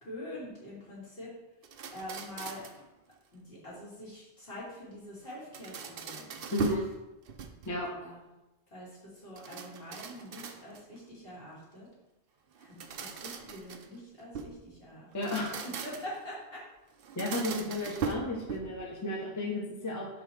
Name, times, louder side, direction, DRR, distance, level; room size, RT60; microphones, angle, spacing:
voice 1, 0.0-1.3 1.9-2.6 3.3-6.4 8.0-8.4 8.7-11.9 12.6-15.3 15.8-16.6, left 1 dB, 60° left, -8 dB, 3.1 m, -45 dB
sound 1, 1.6-2.9 5.3-6.9 7.3-7.9 9.3-11.0 12.6-14.6 15.1-16.2 17.0-18.9, right 5 dB, 60° right, 0.8 m, -40 dB
voice 2, 6.5-6.8 7.6-7.9 15.1-15.6 17.2-20.1, left 1 dB, 15° left, -2 dB, 1.0 m, -33 dB
5.3 x 4.7 x 6.1 m, 0.98 s
omnidirectional pair, 1.1 m